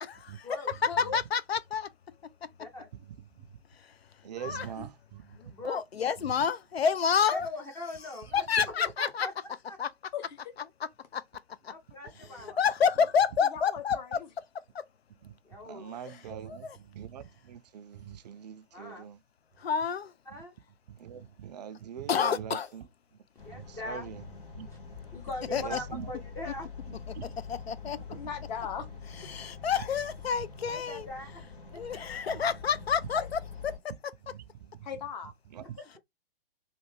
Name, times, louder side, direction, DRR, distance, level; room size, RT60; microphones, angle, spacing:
voice 1, 0.0-1.9 4.4-4.9 5.6-7.5 8.3-9.3 9.8-9.9 11.1-11.2 11.6-11.7 12.4-14.2 14.7-14.8 16.5-16.8 19.6-20.1 22.1-22.7 25.5-25.8 27.1-27.2 27.5-28.0 29.3-31.1 31.7-33.4 34.0-34.1, left 7 dB, 85° left, 0.5 m, -29 dB
voice 2, 0.9-1.2 10.1-10.4 13.4-14.3 16.0-16.4 21.2-21.3 28.1-28.9 29.9-30.0 33.2-33.3 34.8-35.3, left 7 dB, 45° left, 1.0 m, -39 dB
voice 3, 4.2-5.5 6.2-6.3 15.2-15.3 15.6-19.2 20.3-20.4 20.9-22.8 23.5-24.3 24.5-24.7 25.6-26.1 27.1-27.4 28.1-28.2 32.3-32.5 34.2-34.4 34.8-34.9 35.5-35.8, right 9 dB, 45° right, 0.4 m, -43 dB
voice 4, 5.3-5.8 7.2-8.4 8.8-9.8 11.7-12.6 15.4-15.9 18.7-19.1 20.3-20.5 23.4-24.1 25.1-26.7 30.7-31.4 31.7-32.0 35.8-36.0, left 1 dB, 10° left, 0.5 m, -41 dB
sound 1, 23.4-33.8, left 5 dB, 65° left, 2.0 m, -45 dB
3.2 x 2.6 x 3.2 m
figure-of-eight pair, 125°, 30 cm